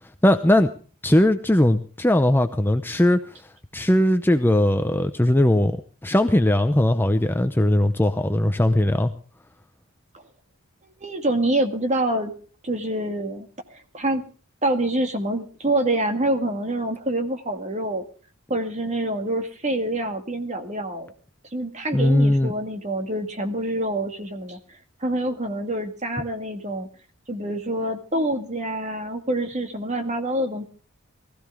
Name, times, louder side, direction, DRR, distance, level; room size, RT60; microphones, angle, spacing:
voice 1, 0.2-0.7 1.0-3.2 3.7-5.7 6.0-9.1 21.9-22.5, left 1 dB, 10° left, 8 dB, 0.6 m, -19 dB
voice 2, 11.0-12.3 12.6-14.2 14.6-18.0 18.5-21.1 21.5-24.6 25.0-26.9 27.3-30.6, right 1 dB, 30° right, 6 dB, 2.0 m, -26 dB
20.0 x 15.0 x 3.5 m, 0.40 s
head